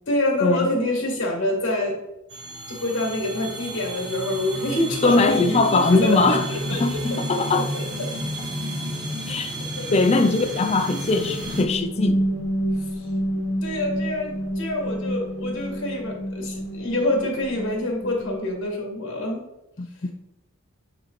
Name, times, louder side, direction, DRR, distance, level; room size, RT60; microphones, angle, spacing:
voice 1, 0.1-2.0 2.7-8.1 9.8-10.0 12.8-13.1 13.6-19.5, left 1 dB, 60° left, 1.9 m, -26 dB
sound 1, 2.3-11.6, equal, 75° right, 1.6 m, -31 dB
voice 2, 5.0-6.5 6.7-7.7 9.3-9.5 9.9-12.2 19.8-19.9, left 3 dB, 30° left, 0.5 m, -21 dB
sound 2, 11.2-18.8, equal, 75° left, 1.1 m, -29 dB
7.7 x 3.8 x 3.2 m
head